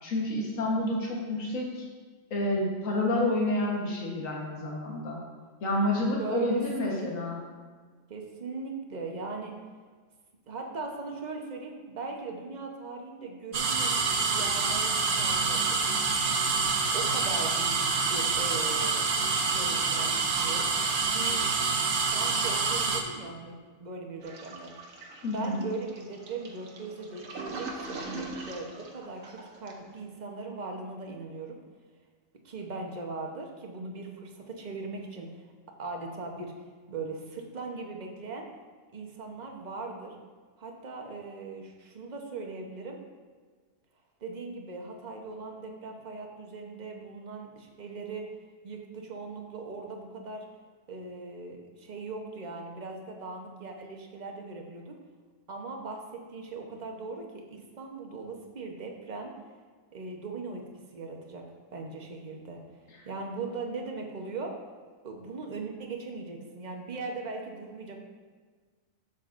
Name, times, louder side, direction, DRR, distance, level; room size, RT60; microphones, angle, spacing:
voice 1, 0.0-1.9 2.3-5.2 5.6-7.4 25.2-25.6 63.0-63.1, left 1 dB, 90° left, -2 dB, 1.7 m, -29 dB
voice 2, 6.2-7.1 8.1-9.5 10.5-15.8 16.9-19.0 19.5-20.7 21.1-21.4 22.1-24.7 25.3-31.6 32.4-35.4 35.8-36.5 36.9-38.5 38.9-40.2 40.6-43.0 44.2-48.2 48.6-50.4 50.9-54.9 55.5-59.3 59.9-60.6 60.9-61.4 61.7-62.6 63.0-64.5 65.0-68.0, right 3 dB, 35° right, 1 dB, 1.0 m, -39 dB
sound 1, 13.5-23.0, right 4 dB, 60° right, 1.0 m, -27 dB
Toilet flush, 24.2-29.9, right 3 dB, 85° right, 1.4 m, -42 dB
12.0 x 7.2 x 2.5 m, 1.5 s
omnidirectional pair, 1.3 m